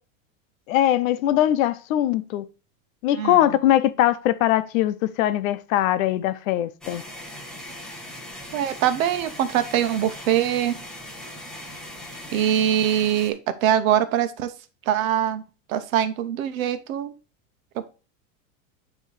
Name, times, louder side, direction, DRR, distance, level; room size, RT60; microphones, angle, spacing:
voice 1, 0.7-2.5 3.0-7.0, left 12 dB, 75° left, 0.8 m, -21 dB
sound 1, 6.8-13.3, left 1 dB, ahead, 0.5 m, -39 dB
voice 2, 8.5-10.8 12.3-14.5 14.9-15.4 15.7-17.1, right 10 dB, 80° right, 1.0 m, -23 dB
9.2 x 3.1 x 4.8 m
supercardioid pair, 170°, 40 cm